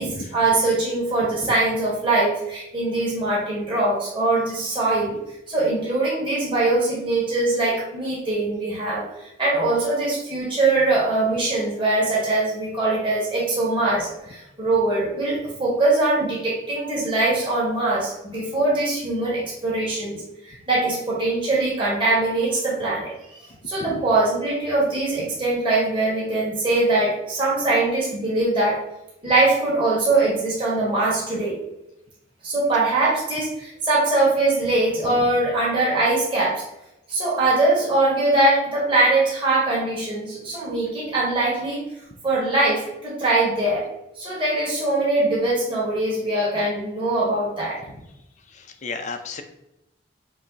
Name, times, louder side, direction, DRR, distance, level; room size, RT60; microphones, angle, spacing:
voice 1, 0.0-5.2 5.5-9.0 9.4-23.1 23.7-28.8 29.2-31.6 32.4-36.6 37.1-41.8 42.2-43.8 44.2-47.8, right 2 dB, 25° right, -6 dB, 1.4 m, -22 dB
voice 2, 48.5-49.4, left 4 dB, 35° left, 6 dB, 0.5 m, -33 dB
5.5 x 2.0 x 3.9 m, 0.88 s
head